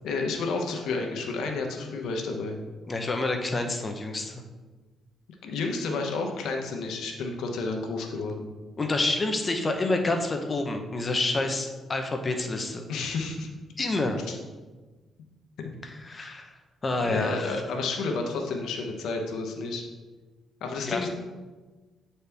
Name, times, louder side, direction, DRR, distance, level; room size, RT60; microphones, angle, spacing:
voice 1, 0.0-2.6 5.4-8.4 12.9-13.5 14.3-14.4 17.0-19.8 20.6-21.1, left 3 dB, 80° left, 3 dB, 1.0 m, -31 dB
voice 2, 2.9-4.4 8.8-12.8 13.8-14.2 15.8-16.5 16.8-17.6 20.9-21.1, left 2 dB, 30° left, 4 dB, 0.8 m, -28 dB
8.1 x 4.2 x 3.5 m, 1.3 s
cardioid pair, 90°, 0 cm